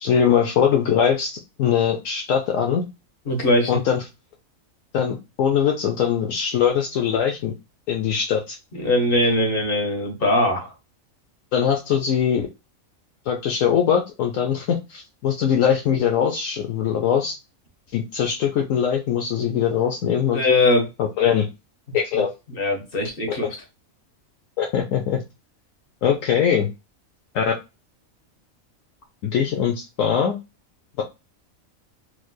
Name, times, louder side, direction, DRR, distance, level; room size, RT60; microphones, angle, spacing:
voice 1, 0.0-2.8 3.7-4.0 4.9-7.5 7.9-8.6 11.5-12.5 13.3-17.4 17.9-20.4 21.0-21.5 21.9-22.3 23.3-23.4 24.6-25.2 26.0-26.7 27.3-27.5 29.2-30.4, left 8 dB, 75° left, 2 dB, 1.0 m, -21 dB
voice 2, 3.3-3.7 8.7-10.7 20.3-20.9 22.1-22.2 22.5-23.5, left 1 dB, 45° left, 1 dB, 1.3 m, -21 dB
3.2 x 3.1 x 2.2 m, 0.26 s
omnidirectional pair, 1.4 m